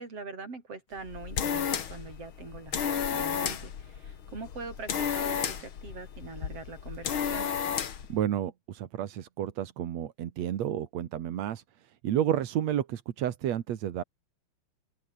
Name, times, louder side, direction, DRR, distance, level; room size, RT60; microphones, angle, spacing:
voice 1, 0.0-7.5, right 4 dB, 40° right, 6.2 m, -43 dB
sound 1, 1.0-8.1, left 8 dB, 45° left, 1.9 m, -32 dB
voice 2, 8.1-11.6 12.0-14.0, right 11 dB, 60° right, 2.2 m, -31 dB
open air
omnidirectional pair, 4.2 m